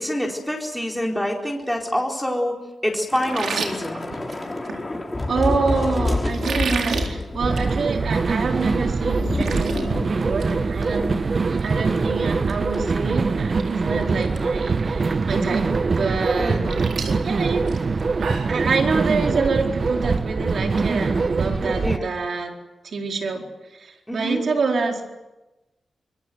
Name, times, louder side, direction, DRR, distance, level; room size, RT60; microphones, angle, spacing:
voice 1, 0.0-4.1 11.9-12.1 16.4-16.8 21.6-22.1 24.1-24.4, equal, 5° left, 0 dB, 4.3 m, -26 dB
Thunder / Rain, 3.1-11.7 12.0-12.1 12.5-12.8, left 2 dB, 25° left, 4.6 m, -29 dB
sound 1, 3.2-4.8 6.3-7.1 7.5-7.7 8.1-8.2 8.7-8.8 9.0-9.8 10.2-10.5 10.8-10.9 12.8-12.9 13.3-13.6 13.9-14.4 14.8-14.9 16.3-18.6, right 5 dB, 85° right, 3.9 m, -30 dB
voice 2, 5.3-11.2 11.6-16.7 17.2-17.6 18.5-22.5 22.8-23.5 23.7-25.0, right 4 dB, 70° right, 2 dB, 4.4 m, -26 dB
sound 2, 7.4-22.0, right 4 dB, 45° right, 1.0 m, -23 dB
25.5 x 22.5 x 7.9 m, 1.1 s
wide cardioid pair, 95°, 0 cm